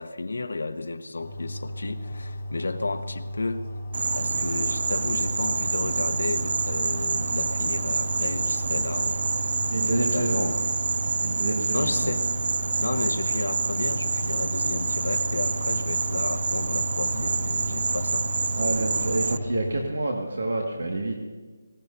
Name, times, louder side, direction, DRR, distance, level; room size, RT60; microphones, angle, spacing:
voice 1, 0.0-3.7 4.1-9.5 9.8-10.5 11.7-12.3 12.8-18.3, left 3 dB, 80° left, 7 dB, 1.1 m, -32 dB
sound 1, 1.2-19.8, left 1 dB, 5° left, 4.1 m, -35 dB
Insect, 3.9-19.4, right 4 dB, 45° right, 0.4 m, -27 dB
voice 2, 9.7-10.6 11.2-12.1 18.6-21.2, right 2 dB, 70° right, 1 dB, 1.9 m, -28 dB
24.0 x 17.0 x 2.8 m, 1.4 s
hypercardioid pair, 180°, 0 cm